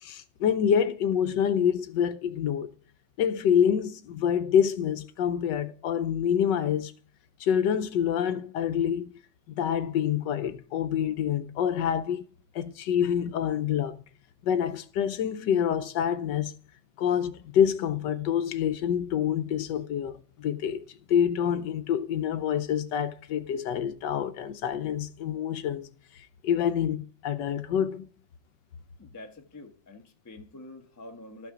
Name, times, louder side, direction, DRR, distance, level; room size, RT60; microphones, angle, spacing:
voice 1, 0.0-2.7 3.2-6.9 7.4-9.1 9.5-12.2 12.5-14.0 14.4-16.5 17.0-20.1 20.4-20.8 21.1-25.9 26.2-28.1, left 8 dB, 70° left, 1.2 m, -27 dB
voice 2, 29.0-31.5, left 2 dB, 15° left, 0.6 m, -46 dB
13.0 x 5.9 x 3.7 m
omnidirectional pair, 2.1 m